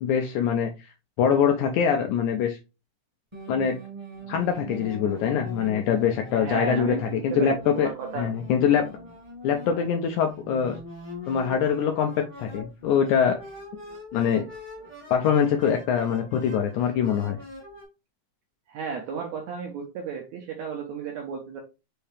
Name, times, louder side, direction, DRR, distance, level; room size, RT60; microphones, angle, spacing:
voice 1, 0.0-2.6 3.5-3.8 4.3-7.9 8.2-8.9 9.4-10.8 11.3-13.4 14.1-14.4 15.1-17.4, left 7 dB, 80° left, 4 dB, 1.7 m, -24 dB
sound 1, 3.3-17.8, left 2 dB, 20° right, 0.8 m, -42 dB
voice 2, 6.4-8.3 18.7-21.6, right 6 dB, 75° right, 1 dB, 1.7 m, -33 dB
5.6 x 2.7 x 3.3 m, 0.28 s
omnidirectional pair, 4.0 m